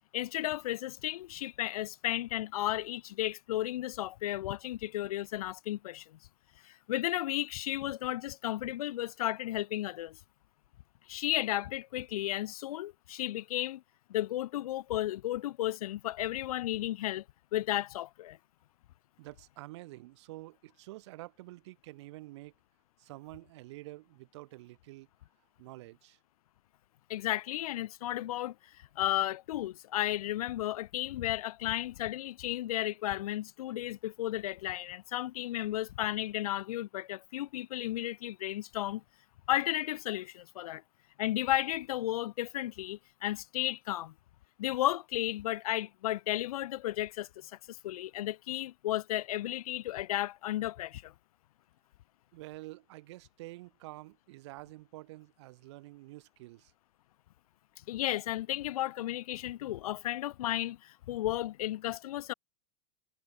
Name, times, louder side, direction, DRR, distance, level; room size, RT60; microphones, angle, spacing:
voice 1, 0.1-6.2 6.6-10.2 11.1-13.8 14.1-17.2 17.5-18.4 27.1-39.0 39.5-40.8 41.2-44.1 44.6-51.1 57.9-62.3, left 14 dB, 80° left, 1.1 m, -34 dB
voice 2, 19.2-22.5 23.0-25.1 25.6-26.2 52.3-56.7, right 19 dB, 50° right, 2.3 m, -48 dB
supercardioid pair, 180°, 19 cm